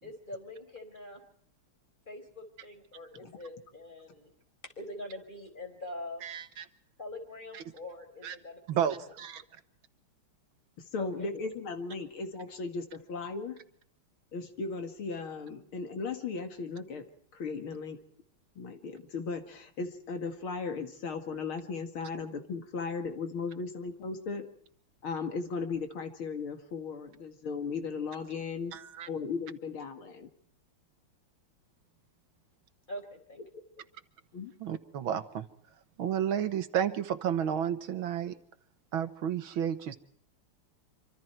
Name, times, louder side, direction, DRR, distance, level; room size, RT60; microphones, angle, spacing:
voice 1, 0.0-1.2 2.1-4.3 4.6-6.2 7.0-9.0 11.0-11.3 32.9-33.4, left 1 dB, 20° left, 5 dB, 4.8 m, -44 dB
voice 2, 6.2-6.7 8.2-8.4 8.7-9.4 28.7-29.1 34.6-35.5 36.0-38.3 38.9-40.0, right 9 dB, 70° right, 11 dB, 1.9 m, -31 dB
voice 3, 10.9-13.6 14.3-17.1 17.3-18.0 18.6-24.5 25.0-28.8 29.1-30.3 34.3-34.5, left 4 dB, 75° left, 7 dB, 2.8 m, -36 dB
26.5 x 25.0 x 4.5 m, 0.63 s
omnidirectional pair, 2.4 m